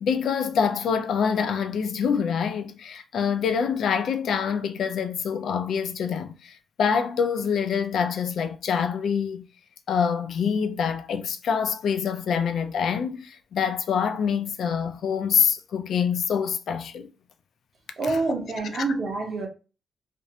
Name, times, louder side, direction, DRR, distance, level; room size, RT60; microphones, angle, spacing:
voice 1, 0.0-9.5 9.9-17.1 18.1-18.2 18.7-18.8, left 7 dB, 75° left, 0.3 m, -26 dB
voice 2, 18.0-19.5, right 3 dB, 55° right, 0.8 m, -27 dB
2.5 x 2.0 x 2.6 m
cardioid pair, 100°, 0 cm